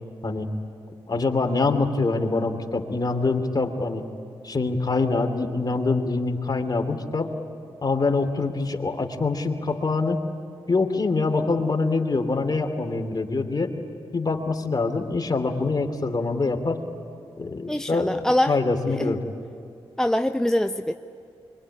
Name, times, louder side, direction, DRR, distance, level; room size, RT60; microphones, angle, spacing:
voice 1, 1.1-4.0 4.4-7.3 7.8-10.2 10.7-13.7 14.1-16.8 17.4-18.2 18.5-19.2, left 3 dB, 40° left, 5 dB, 2.7 m, -24 dB
voice 2, 17.7-18.5 18.9-19.1 20.0-20.9, left 1 dB, 5° left, 7 dB, 0.8 m, -23 dB
24.5 x 23.0 x 9.8 m, 2.4 s
supercardioid pair, 40°, 11 cm